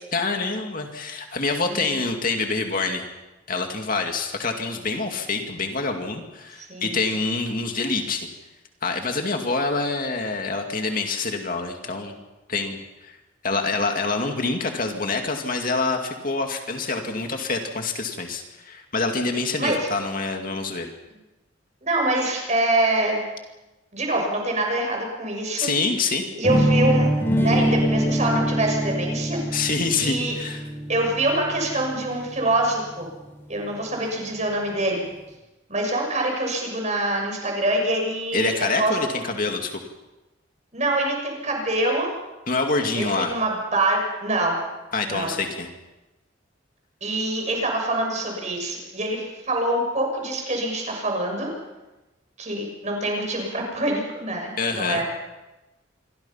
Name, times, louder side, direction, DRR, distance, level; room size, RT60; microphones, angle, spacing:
voice 1, 0.1-3.0 3.5-8.3 8.8-12.2 12.5-12.8 13.4-20.9 25.6-26.2 29.5-30.6 38.3-39.8 42.5-43.4 44.9-45.7 54.6-55.0, left 3 dB, 45° left, 4 dB, 2.4 m, -26 dB
voice 2, 21.8-23.2 23.9-25.7 26.3-27.1 27.4-29.4 30.0-30.3 30.9-33.1 33.5-35.0 35.7-38.9 40.7-42.1 43.0-44.6 45.0-45.3 47.0-51.5 52.4-55.0, right 1 dB, 35° right, 1 dB, 6.9 m, -25 dB
sound 1, 26.4-32.4, equal, 10° left, 5.1 m, -24 dB
27.5 x 23.5 x 5.8 m, 1.1 s
head